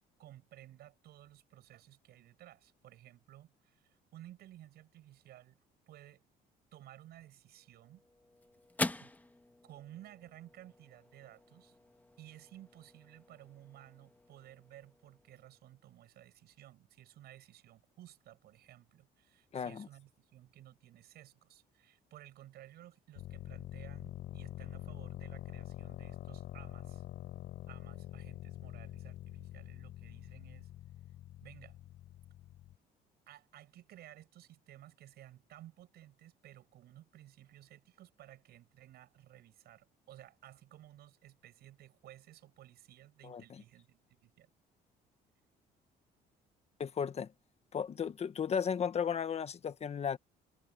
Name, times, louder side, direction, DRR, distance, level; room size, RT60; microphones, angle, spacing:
voice 1, 0.0-5.6 5.9-6.2 6.7-8.0 9.0-9.1 9.6-11.8 12.2-27.0 27.7-30.7 31.4-31.8 33.3-44.5, right 13 dB, 70° right, 6.4 m, -56 dB
sound 1, 7.5-16.1, left 2 dB, 10° left, 1.4 m, -45 dB
voice 2, 19.5-19.9 43.2-43.4 46.8-47.3 47.7-50.2, left 7 dB, 40° left, 1.3 m, -34 dB
sound 2, 23.2-32.8, left 13 dB, 70° left, 6.4 m, -46 dB
cardioid pair, 110°, 17 cm